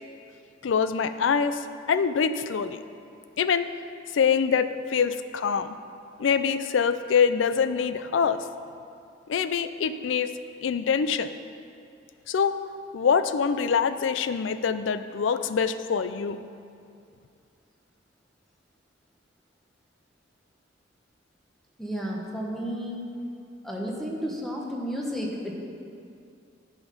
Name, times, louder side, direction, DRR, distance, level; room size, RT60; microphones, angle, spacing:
voice 1, 0.6-2.8 3.4-3.7 4.1-5.8 6.2-8.4 9.3-10.3 10.6-11.3 12.3-12.5 12.9-16.4, left 6 dB, 85° left, 12 dB, 0.4 m, -24 dB
voice 2, 21.8-23.2 23.6-25.5, equal, ahead, -2 dB, 1.0 m, -32 dB
10.5 x 5.1 x 5.3 m, 2.5 s
head